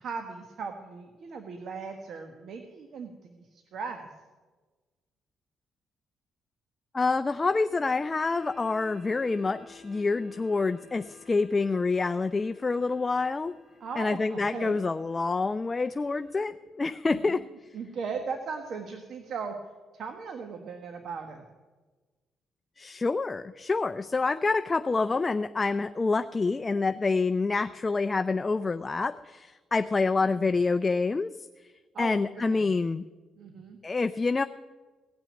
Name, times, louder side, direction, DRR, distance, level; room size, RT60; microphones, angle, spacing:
voice 1, 0.0-4.1 13.8-14.8 17.1-17.4 17.7-19.5 19.9-21.5 30.3-30.5 31.9-32.7 33.4-33.8, right 5 dB, 65° right, 5 dB, 1.3 m, -38 dB
voice 2, 6.9-13.5 14.0-17.4 22.8-31.3 32.0-33.0 33.8-34.4, left 3 dB, 25° left, 10 dB, 0.4 m, -27 dB
sound 1, 8.2-16.4, left 4 dB, 25° right, 4.8 m, -54 dB
17.5 x 6.2 x 9.4 m, 1.3 s
cardioid pair, 90°, 0 cm